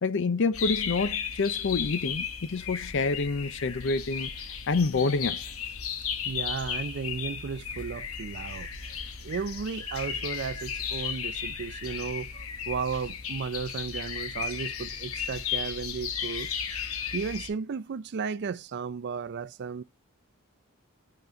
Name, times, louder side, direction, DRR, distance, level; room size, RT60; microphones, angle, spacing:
voice 1, 0.0-4.3 4.7-5.5, left 4 dB, 60° left, 0.6 m, -27 dB
sound 1, 0.5-17.5, left 7 dB, 75° left, 1.0 m, -35 dB
voice 2, 6.2-8.7 9.2-16.5 17.1-19.8, right 5 dB, 50° right, 0.4 m, -34 dB
5.6 x 4.0 x 5.0 m
head